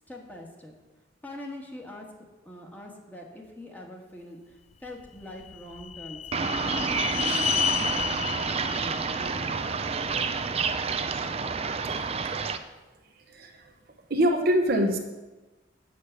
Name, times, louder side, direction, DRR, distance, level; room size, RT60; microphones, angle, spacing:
voice 1, 0.1-0.7 1.2-2.1 2.4-9.6, left 1 dB, 10° left, -1 dB, 1.7 m, -43 dB
sound 1, 5.0-10.2, left 9 dB, 35° left, 0.3 m, -32 dB
sound 2, 6.3-12.6, right 5 dB, 30° right, 0.5 m, -29 dB
voice 2, 13.3-13.7 14.1-15.0, equal, 55° right, 3 dB, 1.0 m, -24 dB
8.5 x 6.6 x 8.2 m, 1.2 s
head